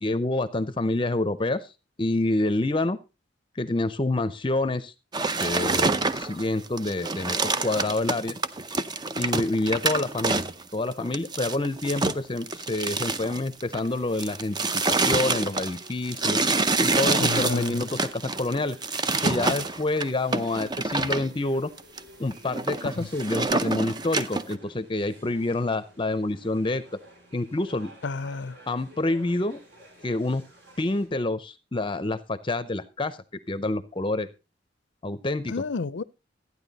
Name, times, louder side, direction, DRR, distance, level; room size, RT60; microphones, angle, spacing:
voice 1, 0.0-1.7 2.0-3.0 3.6-4.9 5.4-8.4 9.1-10.4 10.7-14.6 14.9-16.4 16.8-18.8 19.2-21.7 22.2-26.8 27.3-27.9 28.7-29.6 30.0-30.4 30.8-33.2 33.5-34.3 35.0-35.5, left 2 dB, 25° left, 0.6 m, -27 dB
sound 1, 5.1-13.9 14.2-21.3 21.8-22.0 22.3-24.5, right 3 dB, 25° right, 0.6 m, -27 dB
sound 2, 13.8-31.1, equal, 65° right, 5.8 m, -53 dB
voice 2, 17.2-17.9 23.0-23.1 28.0-28.5 35.5-36.0, left 4 dB, 70° left, 0.6 m, -30 dB
14.0 x 9.7 x 4.1 m
head